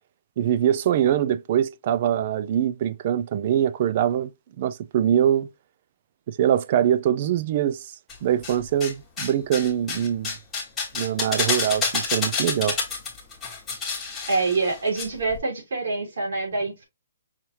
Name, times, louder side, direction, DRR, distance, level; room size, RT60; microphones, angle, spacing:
voice 1, 0.4-4.3 4.6-5.5 6.3-7.8 8.2-10.3 10.9-12.8, right 10 dB, 35° right, 0.3 m, -23 dB
sound 1, 8.1-8.9 9.2-15.0 15.3-15.4, left 5 dB, 10° left, 1.2 m, -28 dB
voice 2, 14.3-16.8, right 3 dB, 70° right, 3.1 m, -26 dB
5.6 x 3.2 x 2.8 m
hypercardioid pair, 170°, 0 cm